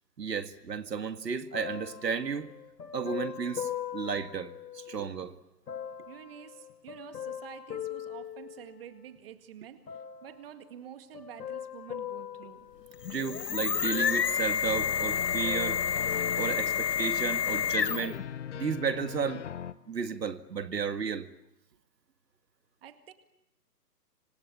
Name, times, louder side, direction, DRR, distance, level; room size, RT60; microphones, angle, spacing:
voice 1, 0.2-2.5 2.9-5.4 13.1-15.8 16.4-18.2 18.5-19.4 19.9-21.3, right 6 dB, 85° right, 2.1 m, -33 dB
sound 1, 1.5-5.1 5.7-9.2 9.9-10.5 11.1-13.5 13.9-14.9 15.2-17.2 17.9-18.0, left 10 dB, 75° left, 1.8 m, -41 dB
voice 2, 6.0-12.7 18.6-18.7 22.8-23.1, right 10 dB, 35° right, 2.0 m, -49 dB
sound 2, 12.9-18.2, left 8 dB, 90° left, 1.1 m, -29 dB
sound 3, 14.7-19.7, left 9 dB, 45° left, 1.3 m, -41 dB
27.0 x 26.0 x 7.5 m
hypercardioid pair, 155°, 48 cm